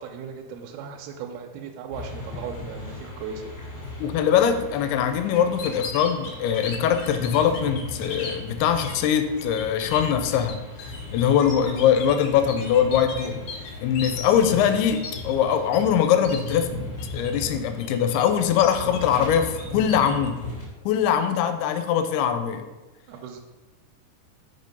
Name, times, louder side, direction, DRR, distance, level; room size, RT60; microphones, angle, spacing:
voice 1, 0.0-3.5 3.8-3.9 23.1-23.4, right 6 dB, 80° right, 2 dB, 2.4 m, -37 dB
sound 1, 1.9-20.7, left 2 dB, 35° left, 1.7 m, -37 dB
voice 2, 4.0-10.6 11.1-13.4 13.8-16.7 17.1-20.4 20.9-22.7, left 8 dB, 90° left, 9 dB, 2.6 m, -22 dB
sound 2, 5.3-8.3 8.8-9.1 9.4-15.8 16.0-16.6 17.0-17.4 17.8-19.0 19.3-20.3, left 4 dB, 70° left, 2.4 m, -37 dB
5.8 x 5.4 x 5.3 m, 1.1 s
omnidirectional pair, 4.5 m